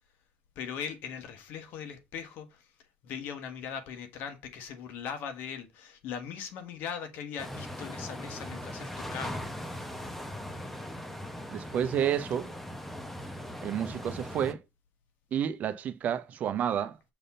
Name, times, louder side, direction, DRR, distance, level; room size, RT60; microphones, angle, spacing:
voice 1, 0.5-2.7 3.0-9.5, left 7 dB, 70° left, 1.5 m, -40 dB
sound 1, 7.4-14.5, left 1 dB, 5° left, 1.0 m, -39 dB
voice 2, 11.5-12.5 13.6-14.6 15.3-16.9, right 9 dB, 50° right, 0.8 m, -30 dB
6.8 x 3.6 x 5.6 m
cardioid pair, 110°, 3 cm